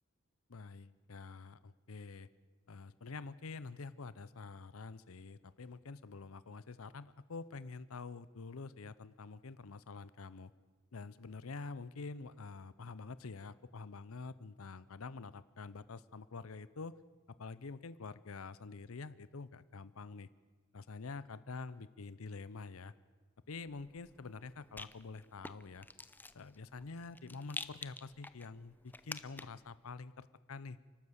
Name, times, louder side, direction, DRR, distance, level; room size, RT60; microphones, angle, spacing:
voice 1, 0.5-2.3 2.7-10.5 10.9-17.0 17.4-20.3 20.7-22.9 23.5-25.9 26.3-30.8, left 4 dB, 80° left, 16 dB, 0.7 m, -47 dB
Rattle, 23.7-29.7, left 3 dB, 10° left, 0.6 m, -49 dB
28.5 x 12.5 x 8.1 m, 1.4 s
head